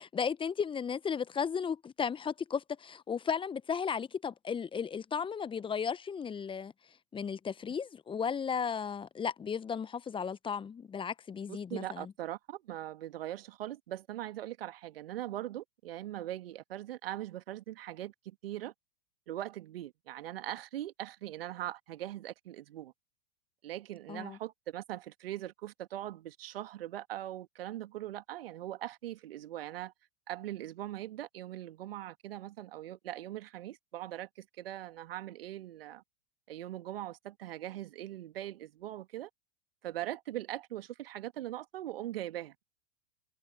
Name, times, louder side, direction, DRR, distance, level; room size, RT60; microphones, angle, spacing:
voice 1, 0.0-6.7 7.1-12.1 24.1-24.4, left 6 dB, 15° left, 1.1 m, -35 dB
voice 2, 11.5-18.7 19.3-22.9 23.6-29.9 30.3-36.0 36.5-39.3 39.8-42.6, right 13 dB, 60° right, 2.1 m, -41 dB
figure-of-eight pair, 95°, 33 cm